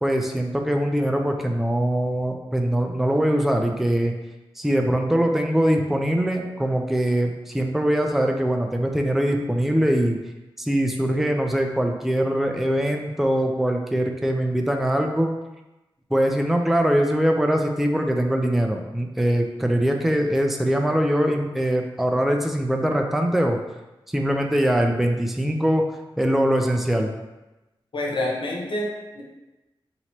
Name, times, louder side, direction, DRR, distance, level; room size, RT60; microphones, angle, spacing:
voice 1, 0.0-4.1 4.6-10.2 10.6-15.3 16.1-23.6 24.1-25.9 26.2-27.1, equal, 5° right, 3 dB, 0.4 m, -22 dB
voice 2, 27.9-29.2, left 1 dB, 65° left, -2 dB, 0.9 m, -27 dB
2.9 x 2.8 x 4.4 m, 1.0 s
wide cardioid pair, 70°, 9 cm